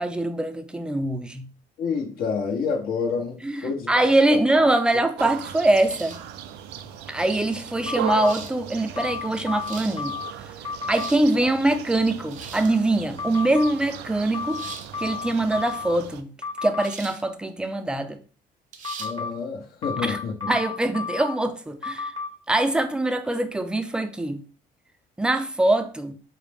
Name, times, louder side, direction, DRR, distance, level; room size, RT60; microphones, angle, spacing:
voice 1, 0.0-1.5 3.4-6.2 7.1-10.2 10.9-14.6 15.0-16.3 16.6-18.2 20.0-20.2 20.5-22.1 22.5-24.4 25.2-26.1, right 2 dB, 5° right, 0.4 m, -23 dB
voice 2, 1.8-4.7 19.0-20.6, left 5 dB, 60° left, 0.9 m, -29 dB
sound 1, 5.2-16.2, right 10 dB, 90° right, 0.4 m, -37 dB
sound 2, 5.9-6.3 7.4-7.5 8.2-8.6 9.4-10.0 10.7-11.3 12.2-12.8 14.5-14.9 16.8-17.2 17.6-17.7 18.7-19.1, right 6 dB, 50° right, 0.6 m, -40 dB
sound 3, 7.9-8.3 9.0-10.3 10.6-11.1 13.2-13.7 14.3-16.0 16.4-16.9 18.8-19.3 19.8-21.4 21.8-22.3, left 5 dB, 30° left, 0.9 m, -32 dB
4.8 x 2.0 x 3.3 m
cardioid pair, 110°, 17 cm